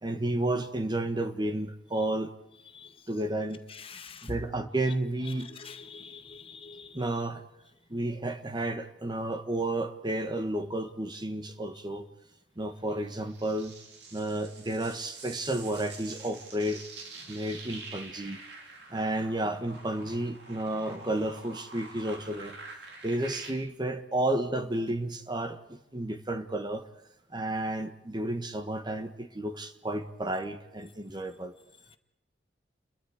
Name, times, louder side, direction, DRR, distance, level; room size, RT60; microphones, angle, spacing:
voice 1, 0.0-2.3 3.1-3.6 4.2-5.5 6.9-7.4 7.9-12.1 12.6-13.7 14.1-16.9 17.3-18.4 18.9-22.6 23.0-26.9 27.3-31.5, right 1 dB, 25° right, 1.5 m, -32 dB
voice 2, 3.9-4.3 5.5-6.9, left 4 dB, 30° left, 1.8 m, -45 dB
sound 1, 12.9-23.5, right 3 dB, 75° right, 4.8 m, -47 dB
29.5 x 22.5 x 5.0 m
head